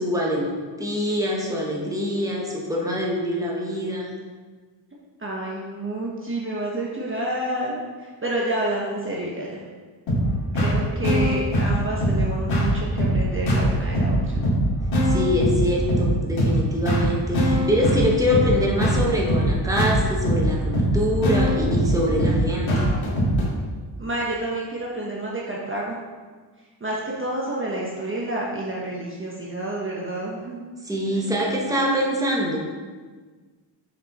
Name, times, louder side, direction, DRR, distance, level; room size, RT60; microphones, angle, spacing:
voice 1, 0.0-4.1 15.0-22.8 30.8-32.6, equal, 5° right, -3 dB, 1.3 m, -24 dB
voice 2, 5.2-9.6 10.5-14.4 24.0-26.0 26.8-30.6 31.1-31.2, right 1 dB, 25° right, -4 dB, 1.1 m, -29 dB
sound 1, 10.1-23.5, equal, 70° left, 2.1 m, -22 dB
6.4 x 5.1 x 4.2 m, 1.4 s
cardioid pair, 95°, 48 cm